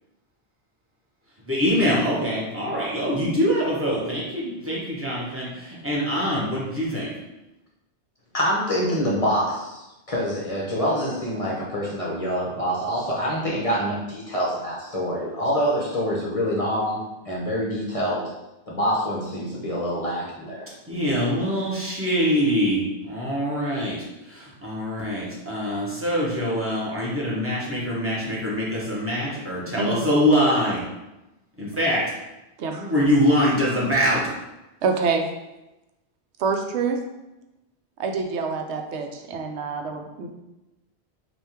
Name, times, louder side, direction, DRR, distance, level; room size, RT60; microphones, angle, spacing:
voice 1, 1.5-7.1 20.9-24.0 24.2-30.8 31.6-32.0 32.8-34.2, equal, 15° right, -6 dB, 1.0 m, -24 dB
voice 2, 8.3-17.0 17.3-18.2 18.7-20.7, equal, 40° left, -5 dB, 0.6 m, -26 dB
voice 3, 32.6-32.9 34.8-35.2 36.4-37.0 38.0-40.3, right 4 dB, 90° right, 4 dB, 0.9 m, -26 dB
3.4 x 2.5 x 4.3 m, 0.97 s
omnidirectional pair, 1.1 m